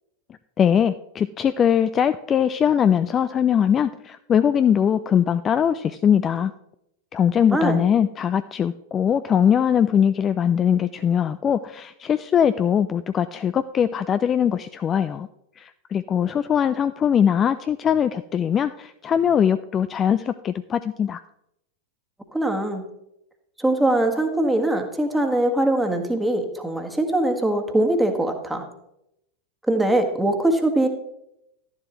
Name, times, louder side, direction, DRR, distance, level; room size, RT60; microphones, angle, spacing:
voice 1, 0.6-6.5 7.1-15.3 15.6-21.2, left 8 dB, 25° left, 12 dB, 0.3 m, -21 dB
voice 2, 7.5-7.8 22.3-22.8 23.6-28.6 29.7-30.9, right 1 dB, 5° right, 4 dB, 1.4 m, -22 dB
12.0 x 11.0 x 3.0 m, 0.82 s
figure-of-eight pair, 90°, 0 cm